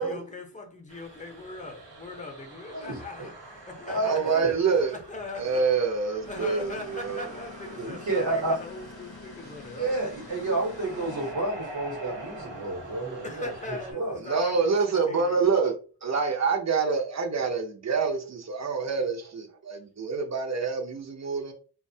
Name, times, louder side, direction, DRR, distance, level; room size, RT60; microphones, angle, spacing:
voice 1, 0.0-5.7 6.3-10.0 13.2-15.5, left 2 dB, 20° left, 0.7 m, -40 dB
sound 1, 0.9-13.9, right 1 dB, 90° right, 0.8 m, -45 dB
voice 2, 2.7-3.3 3.9-4.5 7.8-8.6 9.7-13.5 13.9-14.2, right 2 dB, 70° right, 1.0 m, -30 dB
voice 3, 4.0-4.9 5.4-7.3 14.3-15.7 16.0-21.5, right 5 dB, 40° right, 0.6 m, -26 dB
sound 2, 6.2-11.3, left 5 dB, 65° left, 0.5 m, -47 dB
2.5 x 2.2 x 2.6 m
wide cardioid pair, 45°, 42 cm